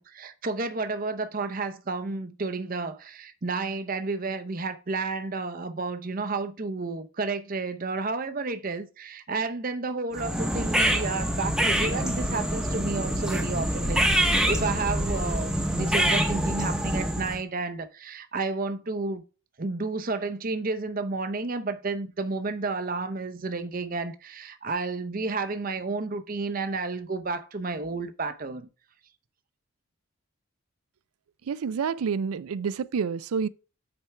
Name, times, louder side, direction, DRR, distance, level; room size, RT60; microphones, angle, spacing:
voice 1, 0.1-19.2 19.6-28.7, right 3 dB, 40° right, 0.6 m, -31 dB
sound 1, 10.1-17.4, right 1 dB, 5° right, 0.8 m, -26 dB
voice 2, 31.5-33.5, right 6 dB, 85° right, 0.4 m, -28 dB
8.7 x 4.5 x 3.3 m
head